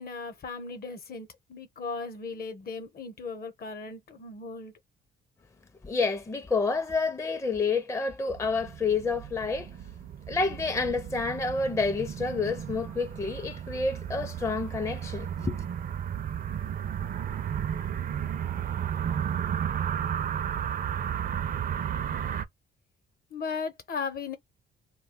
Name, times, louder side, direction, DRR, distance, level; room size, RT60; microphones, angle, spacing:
voice 1, 0.0-4.7 23.3-24.4, left 4 dB, 50° left, 0.8 m, -37 dB
voice 2, 5.8-9.7 10.3-15.6, left 4 dB, 15° left, 0.5 m, -29 dB
sound 1, 8.3-22.4, right 9 dB, 45° right, 0.4 m, -33 dB
2.3 x 2.2 x 3.5 m
cardioid pair, 90°, 20 cm